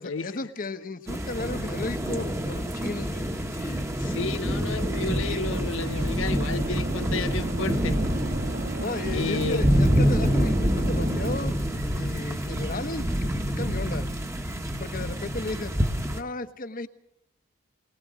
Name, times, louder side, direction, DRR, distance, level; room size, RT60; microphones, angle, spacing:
voice 1, 0.0-4.1 5.8-5.9 8.8-11.6 11.9-14.1 14.8-15.8 16.1-16.9, left 2 dB, 45° left, 1.1 m, -35 dB
sound 1, 1.1-16.2, equal, 15° right, 1.2 m, -27 dB
voice 2, 3.9-8.0 9.1-9.6, left 4 dB, 80° left, 0.9 m, -32 dB
sound 2, 4.8-11.4, right 2 dB, 45° right, 0.7 m, -36 dB
21.5 x 20.0 x 6.3 m
head